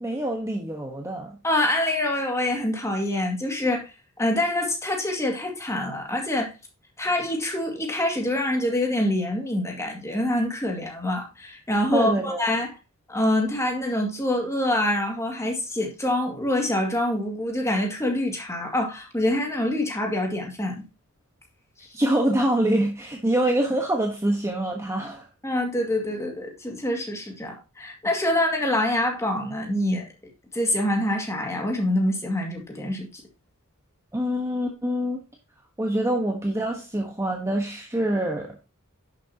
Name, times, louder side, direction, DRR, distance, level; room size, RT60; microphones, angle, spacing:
voice 1, 0.0-1.4 11.9-12.4 21.9-25.2 34.1-35.2 35.8-38.6, right 1 dB, 15° right, 1.2 m, -25 dB
voice 2, 1.4-3.9 4.2-6.5 7.0-12.8 13.1-20.8 21.8-21.9 25.4-30.1 30.5-33.2, left 1 dB, 15° left, 2.1 m, -25 dB
10.5 x 6.9 x 2.8 m
head